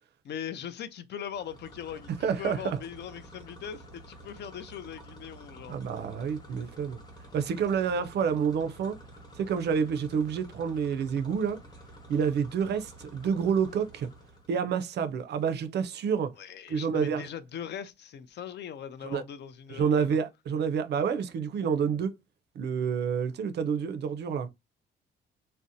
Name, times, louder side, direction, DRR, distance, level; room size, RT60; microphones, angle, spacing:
voice 1, 0.2-2.1 2.4-5.8 16.4-20.2, left 8 dB, 60° left, 0.4 m, -40 dB
sound 1, 1.2-14.6, right 1 dB, 20° left, 0.8 m, -50 dB
voice 2, 2.2-2.8 5.7-7.0 7.3-9.0 9.3-11.6 12.1-14.1 14.5-16.3 16.7-17.3 19.0-19.2 19.7-22.1 22.6-24.5, right 6 dB, 60° right, 0.4 m, -28 dB
2.6 x 2.0 x 2.5 m
cardioid pair, 90°, 20 cm